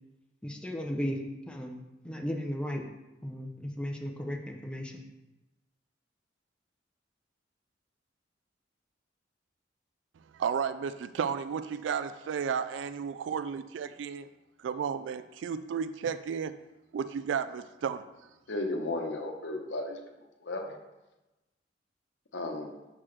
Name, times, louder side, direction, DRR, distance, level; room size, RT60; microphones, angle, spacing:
voice 1, 0.4-1.2 1.5-1.7 2.0-2.8 3.2-5.0, equal, 5° left, 2 dB, 0.6 m, -35 dB
voice 2, 10.3-14.3 14.6-16.6 16.9-18.0, right 7 dB, 75° right, 12 dB, 0.3 m, -33 dB
voice 3, 18.5-20.0 20.4-20.8 22.3-22.9, left 2 dB, 70° left, 2 dB, 0.9 m, -34 dB
6.1 x 5.7 x 3.2 m, 1.0 s
head